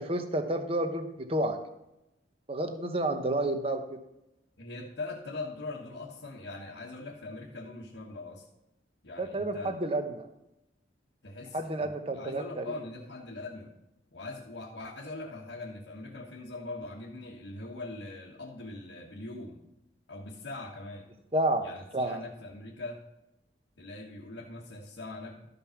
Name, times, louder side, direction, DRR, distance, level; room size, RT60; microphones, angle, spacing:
voice 1, 0.0-1.6 2.5-3.8 9.2-10.3 11.5-12.7 21.3-21.6 21.9-22.2, right 1 dB, 30° right, 7 dB, 0.9 m, -30 dB
voice 2, 4.6-8.5 9.0-9.7 11.2-13.7 14.1-19.6 20.1-21.1 21.6-23.0 23.8-25.5, left 2 dB, 80° left, -3 dB, 1.3 m, -41 dB
12.5 x 5.4 x 5.8 m, 0.89 s
head